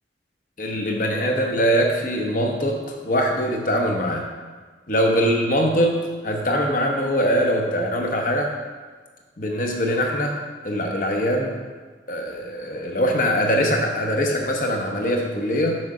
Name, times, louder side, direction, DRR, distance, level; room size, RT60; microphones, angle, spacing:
voice 1, 0.6-4.3 4.9-6.0 6.2-8.5 9.4-10.3 10.6-11.6 12.1-15.8, equal, 45° left, 1 dB, 0.9 m, -22 dB
6.3 x 6.0 x 3.7 m, 1.4 s
head